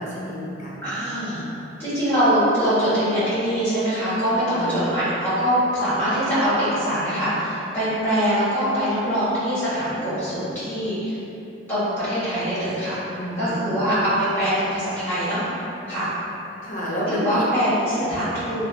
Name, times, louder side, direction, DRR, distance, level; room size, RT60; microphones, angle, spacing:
voice 1, 0.0-1.0 4.5-5.0 13.1-13.8 16.6-17.4 17.8-18.1, equal, 40° left, -6 dB, 0.6 m, -30 dB
voice 2, 0.8-1.4 1.8-11.2 11.7-13.0 13.4-16.1 17.1-18.6, equal, 10° left, -13 dB, 1.3 m, -23 dB
3.0 x 2.4 x 2.5 m, 3.0 s
head